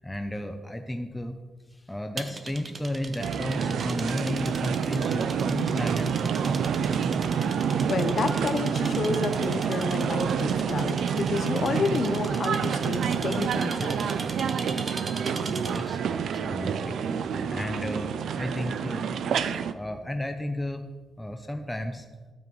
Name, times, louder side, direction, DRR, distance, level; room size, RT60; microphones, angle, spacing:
voice 1, 0.0-1.4 1.7-6.9 15.5-17.0 17.5-19.1 19.7-20.9 21.2-22.1, left 1 dB, 5° left, 5 dB, 0.4 m, -33 dB
sound 1, 2.2-16.0, right 3 dB, 35° right, 0.6 m, -39 dB
sound 2, 3.2-19.7, right 7 dB, 85° right, 0.4 m, -28 dB
voice 2, 7.9-14.0, left 4 dB, 50° left, 9 dB, 0.6 m, -30 dB
12.0 x 7.2 x 3.1 m, 1.3 s
wide cardioid pair, 165°, 0 cm